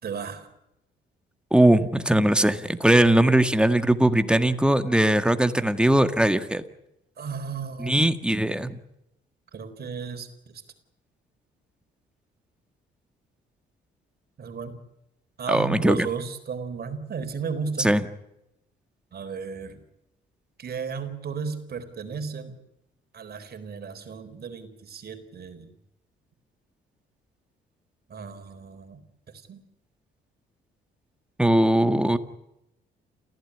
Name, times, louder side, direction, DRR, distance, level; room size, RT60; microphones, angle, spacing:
voice 1, 0.0-0.5 7.2-8.1 9.5-10.6 14.4-14.8 15.4-17.9 19.1-19.8 20.6-22.6 23.1-25.7 28.1-29.0 29.3-29.6, right 6 dB, 50° right, 8 dB, 4.1 m, -34 dB
voice 2, 1.5-6.6 7.8-8.8 15.5-16.1 17.8-18.0 31.4-32.2, right 1 dB, 5° right, 9 dB, 1.8 m, -20 dB
28.5 x 16.0 x 9.9 m, 0.86 s
cardioid pair, 90°, 20 cm